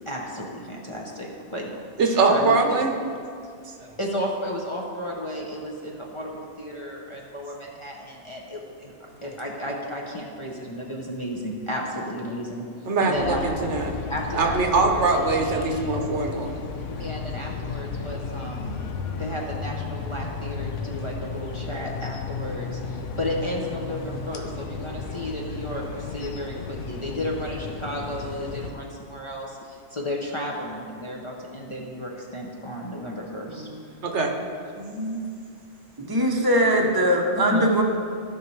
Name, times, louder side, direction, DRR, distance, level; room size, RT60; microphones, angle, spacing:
voice 1, 0.1-1.7 2.2-2.6 4.0-8.9 9.2-12.7 13.0-13.4 14.1-15.0 17.0-18.8 19.1-33.7 37.5-37.8, equal, 30° left, -2 dB, 0.8 m, -33 dB
voice 2, 2.0-2.9 12.8-13.9 14.3-16.6 34.0-34.3, right 3 dB, 70° right, 3 dB, 1.2 m, -22 dB
sound 1, 13.1-28.7, left 4 dB, 85° left, 1.1 m, -34 dB
voice 3, 33.5-34.1 34.8-35.2 36.0-37.8, equal, 20° right, 1 dB, 0.8 m, -22 dB
14.5 x 5.3 x 3.3 m, 2.3 s
omnidirectional pair, 1.2 m